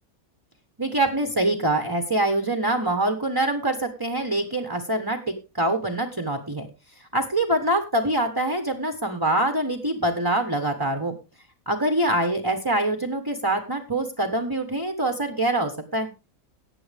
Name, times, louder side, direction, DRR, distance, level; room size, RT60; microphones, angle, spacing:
voice 1, 0.8-6.7 7.1-11.1 11.7-16.1, right 1 dB, 15° right, 7 dB, 1.1 m, -24 dB
15.0 x 9.3 x 3.5 m, 0.29 s
omnidirectional pair, 1.5 m